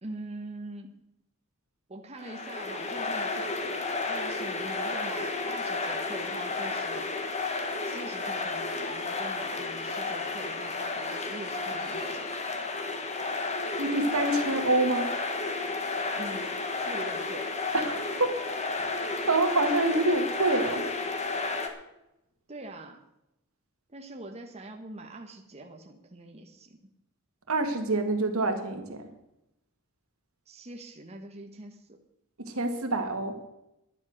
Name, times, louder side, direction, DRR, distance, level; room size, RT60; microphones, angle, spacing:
voice 1, 0.0-1.0 1.9-7.1 7.8-12.3 16.1-17.5 22.5-23.0 23.9-26.8 30.5-32.0, right 2 dB, 30° right, 3 dB, 1.2 m, -43 dB
sound 1, 2.2-21.7, left 3 dB, 30° left, 1.5 m, -32 dB
voice 2, 13.8-15.1 17.7-18.4 18.8-20.9 27.5-29.1 32.4-33.4, right 2 dB, 75° right, 6 dB, 2.0 m, -27 dB
11.0 x 10.5 x 6.5 m, 0.87 s
head